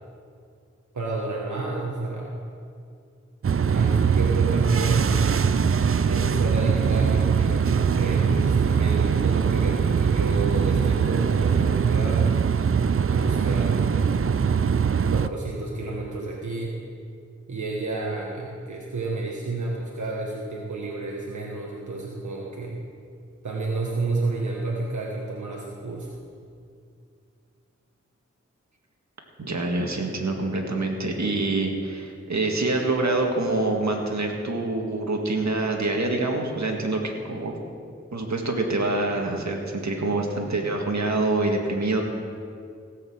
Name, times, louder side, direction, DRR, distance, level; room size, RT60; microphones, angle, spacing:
voice 1, 0.9-2.4 3.7-5.2 6.0-12.3 13.1-14.3 15.1-16.7 17.5-22.8 23.4-26.1, right 3 dB, 85° right, -2 dB, 1.4 m, -31 dB
sound 1, 3.4-15.3, right 6 dB, 50° right, 0.5 m, -22 dB
voice 2, 29.4-37.6 38.1-42.0, right 2 dB, 70° right, 1 dB, 1.9 m, -26 dB
17.0 x 6.7 x 7.8 m, 2.3 s
wide cardioid pair, 45°, 29 cm